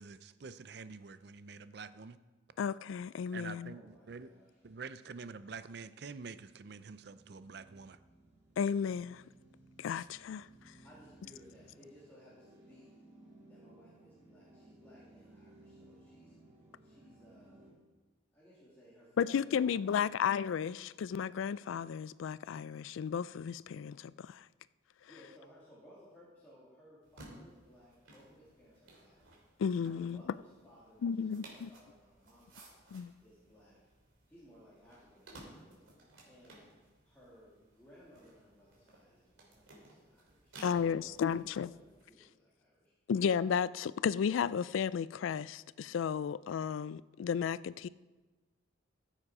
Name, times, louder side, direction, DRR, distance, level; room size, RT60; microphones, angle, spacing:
voice 1, 0.0-2.2 3.3-4.3 4.6-8.0, right 5 dB, 55° right, 0.5 m, -47 dB
voice 2, 2.6-3.7 8.6-9.2 9.8-10.5 19.2-24.4 29.6-30.2 31.0-31.7 32.9-33.1 40.6-41.7 43.1-47.9, left 7 dB, 85° left, 0.3 m, -33 dB
voice 3, 3.7-4.5 10.8-13.0 13.5-16.3 16.8-17.8 18.3-20.2 25.1-29.2 29.9-32.8 33.2-33.8 34.3-35.9 36.3-42.9, equal, 10° left, 2.4 m, -60 dB
sound 1, 4.4-17.7, right 1 dB, 10° right, 2.9 m, -61 dB
sound 2, 27.0-42.0, right 2 dB, 85° right, 3.0 m, -58 dB
14.5 x 7.6 x 4.8 m
head